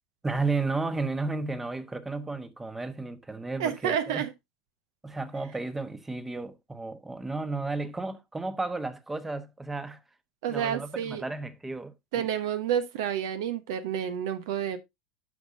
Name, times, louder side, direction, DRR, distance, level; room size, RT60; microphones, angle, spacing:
voice 1, 0.2-4.2 5.0-10.0 10.5-12.3, right 3 dB, 10° right, 1.1 m, -33 dB
voice 2, 3.6-4.3 10.4-11.2 12.1-14.8, right 9 dB, 65° right, 1.0 m, -29 dB
12.0 x 5.7 x 2.7 m
hypercardioid pair, 80°, 2 cm